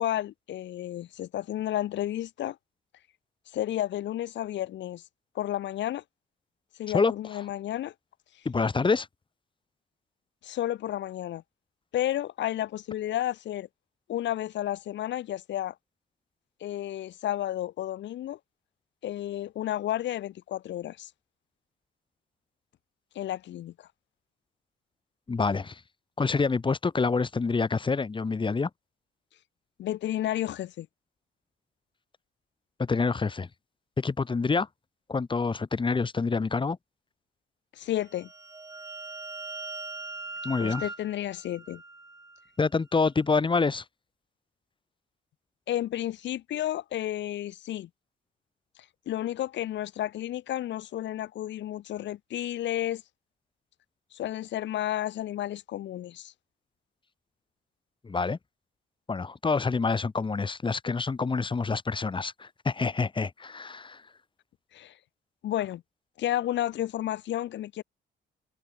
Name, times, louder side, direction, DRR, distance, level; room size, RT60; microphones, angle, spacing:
voice 1, 0.0-2.6 3.5-5.0 5.3-6.0 6.8-7.9 10.4-11.4 11.9-13.7 14.1-15.7 16.6-18.4 19.0-21.1 23.1-23.9 29.8-30.9 37.7-38.3 40.6-41.8 45.7-47.9 49.1-53.0 54.1-56.3 64.7-64.9 65.4-65.8 66.2-67.8, left 12 dB, 65° left, 0.7 m, -32 dB
voice 2, 8.4-9.1 25.3-25.8 26.2-28.7 32.8-33.5 34.0-34.7 35.1-36.8 40.4-40.8 42.6-43.8 58.0-58.4 59.1-64.0, left 4 dB, 25° left, 1.1 m, -27 dB
sound 1, 38.0-42.5, right 3 dB, 15° right, 1.2 m, -41 dB
cardioid pair, 90°, 20 cm